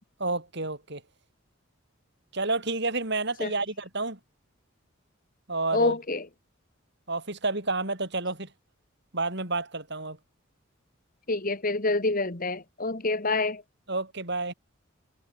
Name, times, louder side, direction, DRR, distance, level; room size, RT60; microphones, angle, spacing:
voice 1, 0.2-1.0 2.3-4.2 5.5-5.9 7.1-8.5 9.1-10.2 13.9-14.5, right 3 dB, 55° right, 6.1 m, -30 dB
voice 2, 5.7-6.3 11.3-13.6, left 2 dB, 45° left, 1.8 m, -27 dB
head